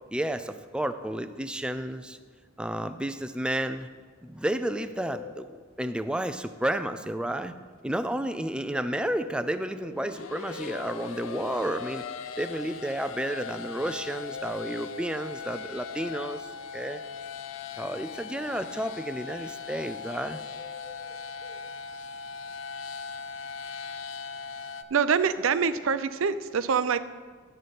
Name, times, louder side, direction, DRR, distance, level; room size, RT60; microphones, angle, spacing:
voice 1, 0.1-2.2 2.6-3.9 4.2-7.5 7.8-12.0 12.4-16.5 16.7-17.0 17.8-20.4, right 1 dB, 5° right, 10 dB, 0.4 m, -31 dB
sound 1, 4.6-6.0 8.7-10.1 14.3-15.7 20.2-21.6, left 6 dB, 30° left, 0.7 m, -46 dB
sound 2, 9.9-24.8, left 5 dB, 70° left, 0.5 m, -39 dB
voice 2, 24.9-27.0, right 6 dB, 75° right, 13 dB, 0.5 m, -25 dB
12.0 x 7.8 x 4.1 m, 1.5 s
head